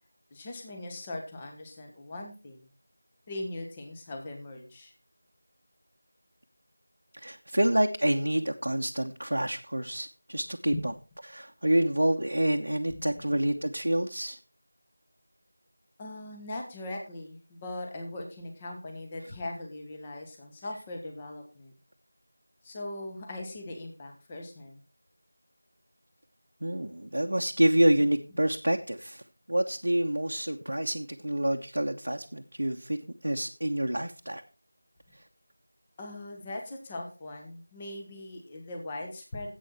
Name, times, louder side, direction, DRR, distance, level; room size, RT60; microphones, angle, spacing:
voice 1, 0.3-2.7 3.3-4.9 10.7-10.9 13.0-13.5 16.0-21.8 22.6-24.8 36.0-39.5, left 1 dB, 15° left, 2 dB, 1.4 m, -40 dB
voice 2, 7.1-10.9 11.3-14.4 26.6-29.2 29.5-34.4, right 1 dB, 80° right, 1 dB, 1.0 m, -27 dB
11.5 x 8.3 x 4.3 m, 0.33 s
figure-of-eight pair, 175°, 0 cm